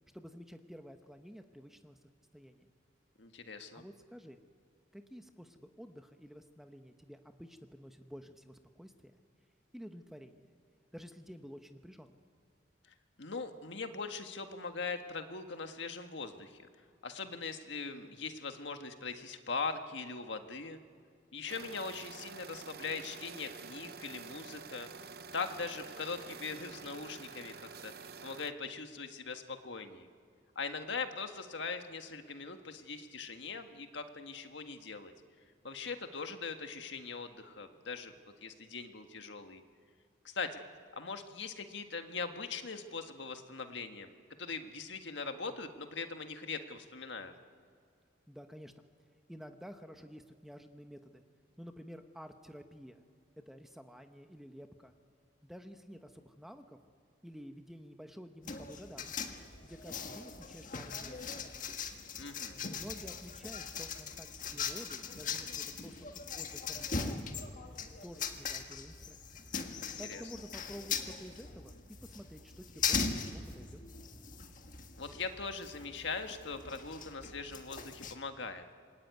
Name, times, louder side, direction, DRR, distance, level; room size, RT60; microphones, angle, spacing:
voice 1, 0.1-2.0 2.3-2.7 3.7-4.4 4.9-9.1 9.7-10.5 10.9-12.2 48.3-48.9 49.3-51.2 51.6-53.0 53.4-54.9 55.4-56.8 57.2-59.4 59.6-61.6 62.7-67.7 68.0-69.3 70.0-71.8 72.0-73.8, equal, ahead, 6 dB, 0.9 m, -51 dB
voice 2, 3.2-3.8 13.2-16.7 17.0-20.8 21.3-24.9 25.3-27.9 28.2-30.1 30.5-35.1 35.6-38.1 38.4-39.6 40.2-40.6 41.0-44.1 44.4-47.3 62.2-62.6 69.8-70.2 75.0-78.6, left 4 dB, 70° left, 6 dB, 1.6 m, -41 dB
sound 1, 21.5-28.5, right 5 dB, 50° right, 0.8 m, -48 dB
sound 2, 58.4-78.1, left 5 dB, 40° left, 1.6 m, -40 dB
26.5 x 22.0 x 9.4 m, 2.2 s
head